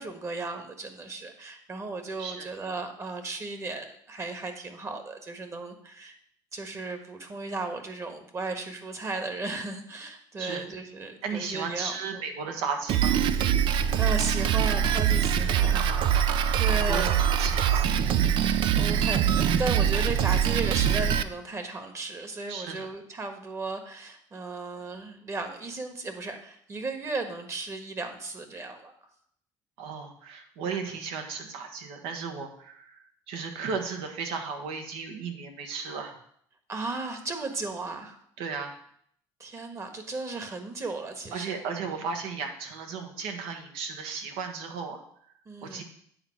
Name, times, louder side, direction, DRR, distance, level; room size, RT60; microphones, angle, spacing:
voice 1, 0.0-6.2 6.5-12.2 13.7-15.8 16.6-17.2 18.8-28.9 30.7-30.9 36.7-38.2 39.4-41.6 45.4-45.8, right 3 dB, 30° right, 6 dB, 1.4 m, -35 dB
voice 2, 11.2-13.1 15.3-18.0 22.5-22.9 29.8-36.2 38.4-38.7 41.3-45.0 45.6-45.8, right 5 dB, 80° right, 5 dB, 1.4 m, -35 dB
Drum kit, 12.9-21.2, right 8 dB, 60° right, 0.5 m, -23 dB
8.7 x 4.2 x 6.1 m, 0.66 s
supercardioid pair, 95°, 10 cm